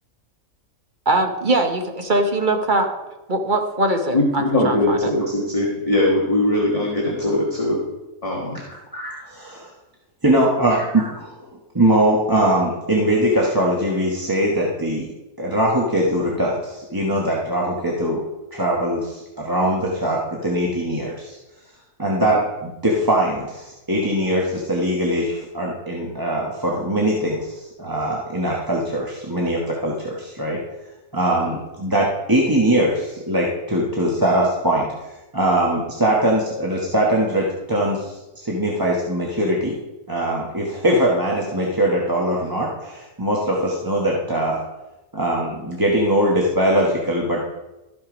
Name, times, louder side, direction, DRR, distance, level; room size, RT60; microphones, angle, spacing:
voice 1, 1.0-2.9 3.3-5.1, right 2 dB, 35° right, 4 dB, 1.2 m, -21 dB
voice 2, 4.1-7.8 8.2-8.5 22.2-22.3, left 1 dB, 25° left, -2 dB, 1.6 m, -20 dB
voice 3, 8.9-9.7 10.2-11.3 11.7-15.1 15.4-18.2 18.5-21.4 22.0-30.6 31.1-34.9 35.3-39.7 40.1-44.6 45.1-47.4, right 1 dB, 15° right, -3 dB, 1.1 m, -21 dB
13.0 x 6.3 x 5.1 m, 1.0 s
omnidirectional pair, 1.5 m